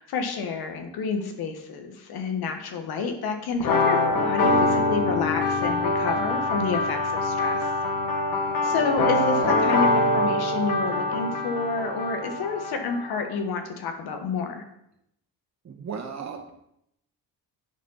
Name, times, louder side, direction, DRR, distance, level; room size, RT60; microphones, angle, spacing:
voice 1, 0.0-7.7 8.6-14.7, left 4 dB, 75° left, 5 dB, 1.6 m, -29 dB
sound 1, 3.6-13.2, left 2 dB, 55° left, 1.7 m, -24 dB
voice 2, 8.6-9.7 15.6-16.5, right 6 dB, 45° right, 1 dB, 2.0 m, -38 dB
9.7 x 4.6 x 5.6 m, 0.77 s
cardioid pair, 105°, 38 cm